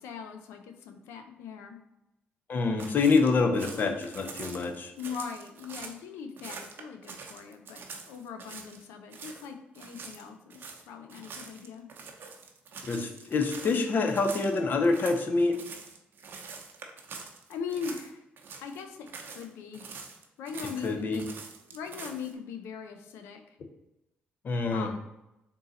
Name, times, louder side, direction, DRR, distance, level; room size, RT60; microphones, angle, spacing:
voice 1, 0.0-1.8 5.0-11.9 17.5-18.2 18.6-19.8 20.4-21.3 21.7-23.4 24.7-25.0, left 6 dB, 90° left, 6 dB, 0.5 m, -40 dB
voice 2, 2.5-4.9 12.8-15.6 20.8-21.2 24.4-24.9, left 3 dB, 50° left, 5 dB, 0.7 m, -26 dB
sound 1, 2.8-6.0 6.4-8.8 9.1-9.5 9.7-18.1 18.4-19.5 19.7-22.3, right 5 dB, 60° right, 0.7 m, -45 dB
3.7 x 2.7 x 3.9 m, 0.91 s
cardioid pair, 75°, 4 cm